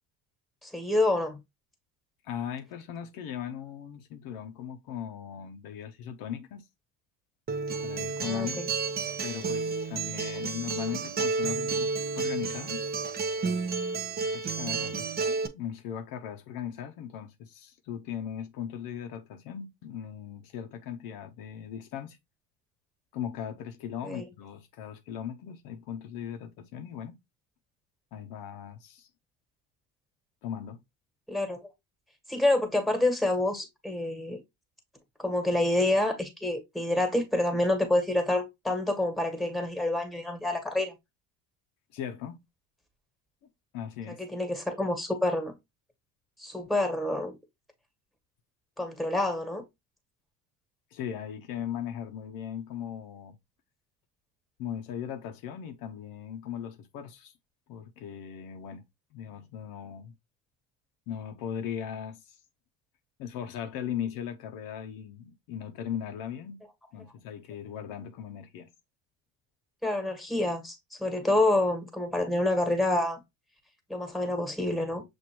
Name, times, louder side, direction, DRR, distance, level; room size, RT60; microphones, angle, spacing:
voice 1, 0.6-1.4 8.2-8.7 24.0-24.2 31.3-31.7 32.3-34.4 35.2-40.9 44.2-45.5 46.4-47.4 48.8-49.6 69.8-73.2 73.9-75.0, left 2 dB, ahead, 1.3 m, -27 dB
voice 2, 2.2-6.6 7.8-8.6 9.2-12.9 14.2-22.2 23.1-27.2 28.1-29.1 30.4-30.8 41.9-42.4 43.7-44.2 50.9-53.4 54.6-57.3 57.7-58.8 59.1-60.1 61.1-62.4 63.2-66.6 66.9-68.7, left 9 dB, 70° left, 0.7 m, -38 dB
Acoustic guitar, 7.5-15.5, right 4 dB, 25° right, 0.6 m, -31 dB
6.1 x 2.6 x 2.9 m
supercardioid pair, 85°, 38 cm